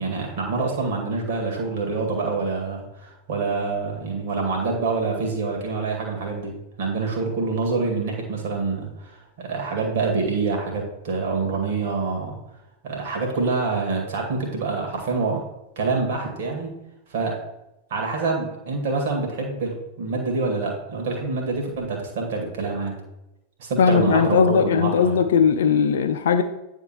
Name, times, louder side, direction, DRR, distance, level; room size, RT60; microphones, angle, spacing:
voice 1, 0.0-12.4 12.8-15.4 15.8-16.7 17.1-17.4 17.9-22.9 23.6-25.2, right 4 dB, 55° right, 2.1 m, -26 dB
voice 2, 23.8-26.4, left 6 dB, 60° left, 0.5 m, -19 dB
9.3 x 3.7 x 5.7 m
figure-of-eight pair, 90°, 0 cm